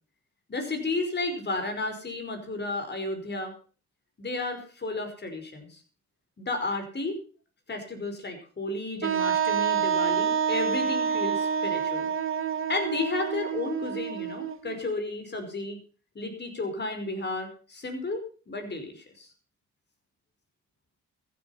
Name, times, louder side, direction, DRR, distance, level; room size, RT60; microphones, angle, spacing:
voice 1, 0.5-3.5 4.2-5.8 6.4-7.2 7.7-12.1 12.7-15.8 16.2-19.3, left 2 dB, 35° left, 6 dB, 5.2 m, -33 dB
Wind instrument woodwind instrument, 9.0-14.8, right 7 dB, 45° right, 1.5 m, -28 dB
14.5 x 11.5 x 5.7 m, 0.39 s
cardioid pair, 90°, 30 cm